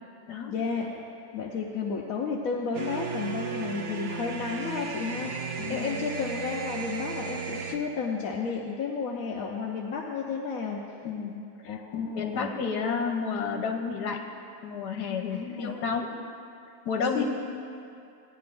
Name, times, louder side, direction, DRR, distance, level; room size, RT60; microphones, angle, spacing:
voice 1, 0.5-1.1 1.3-5.3 5.7-10.8 11.6-12.5 15.3-15.8 17.1-17.2, left 5 dB, 65° left, -2 dB, 1.1 m, -32 dB
sound 1, 2.7-7.8, right 5 dB, 60° right, 0.8 m, -35 dB
voice 2, 5.6-6.0 11.0-14.2 14.6-16.1 16.8-17.2, left 5 dB, 80° left, 2 dB, 1.5 m, -31 dB
17.5 x 9.8 x 2.6 m, 2.5 s
omnidirectional pair, 1.7 m